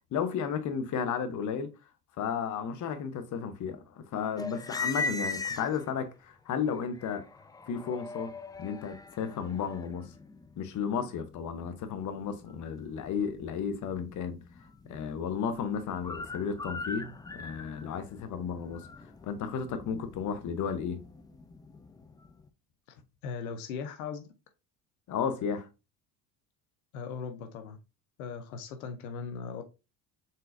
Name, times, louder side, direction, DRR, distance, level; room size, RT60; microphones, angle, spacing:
voice 1, 0.1-1.7 2.2-7.2 7.7-8.3 8.6-10.1 10.6-14.4 14.9-18.9 19.2-21.0 25.1-25.7, left 7 dB, 45° left, 0.9 m, -33 dB
sound 1, 4.4-6.1 6.7-22.5, left 3 dB, 10° left, 0.4 m, -41 dB
voice 2, 23.2-24.3 26.9-27.8 28.2-29.6, left 5 dB, 85° left, 0.7 m, -38 dB
4.1 x 3.8 x 2.5 m
hypercardioid pair, 70°, 42 cm